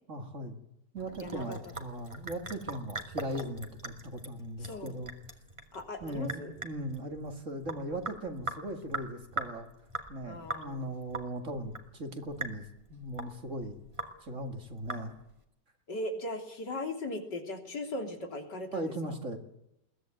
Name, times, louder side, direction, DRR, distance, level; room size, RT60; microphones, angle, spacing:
voice 1, 0.1-0.6 0.9-5.1 6.0-9.7 10.1-13.8 14.2-15.2 18.7-19.4, right 1 dB, 45° right, 6 dB, 2.5 m, -38 dB
Sink (filling or washing) / Drip, 1.0-15.4, right 2 dB, 15° right, 2.3 m, -42 dB
voice 2, 1.2-1.6 4.6-4.9 5.7-6.5 10.3-10.9 15.9-18.9, left 1 dB, 80° left, 4 dB, 3.8 m, -38 dB
22.0 x 17.0 x 9.1 m, 0.83 s
omnidirectional pair, 1.8 m